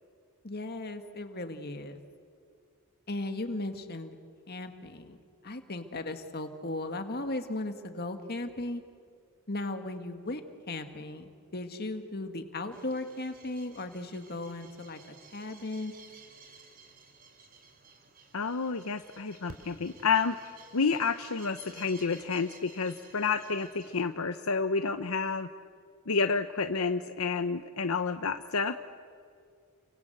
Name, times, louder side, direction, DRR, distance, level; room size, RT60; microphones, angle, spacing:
voice 1, 0.4-2.0 3.1-4.2 4.5-8.8 9.5-15.0 15.3-15.9, left 2 dB, 45° left, 7 dB, 2.0 m, -37 dB
sound 1, 12.7-24.0, right 4 dB, 40° right, 3.2 m, -54 dB
voice 2, 18.3-20.4 20.7-25.5 26.1-28.9, left 5 dB, 70° left, 9 dB, 0.8 m, -30 dB
29.5 x 24.5 x 8.0 m, 2.2 s
head